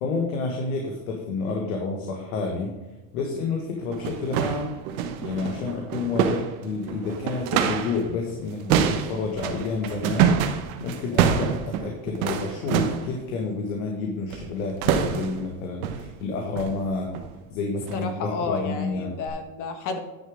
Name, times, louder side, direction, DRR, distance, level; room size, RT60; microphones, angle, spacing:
voice 1, 0.0-2.7 3.1-4.8 5.2-10.4 10.8-17.1 17.5-19.1, left 4 dB, 85° left, 1 dB, 1.8 m, -29 dB
sound 1, 3.2-3.3 3.8-8.0 8.3-13.1 14.3-14.5 14.8-15.5 15.8-16.1 16.6-16.8 17.1-17.3 17.8-18.0 18.5-18.6 19.3-19.4, right 8 dB, 80° right, 1.2 m, -26 dB
voice 2, 17.9-20.0, left 4 dB, 45° left, 6 dB, 1.6 m, -31 dB
10.0 x 7.0 x 3.7 m, 1.1 s
supercardioid pair, 130°, 41 cm